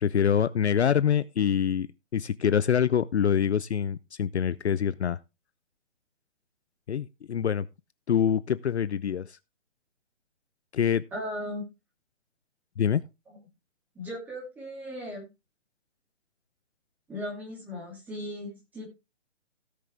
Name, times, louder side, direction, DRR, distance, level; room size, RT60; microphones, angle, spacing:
voice 1, 0.0-5.2 6.9-7.7 8.1-9.4 10.7-11.0 12.8-13.0, left 8 dB, 60° left, 0.6 m, -25 dB
voice 2, 11.1-11.7 13.9-15.3 17.1-18.9, equal, 5° right, 2.4 m, -37 dB
17.0 x 6.7 x 3.4 m
hypercardioid pair, 170°, 37 cm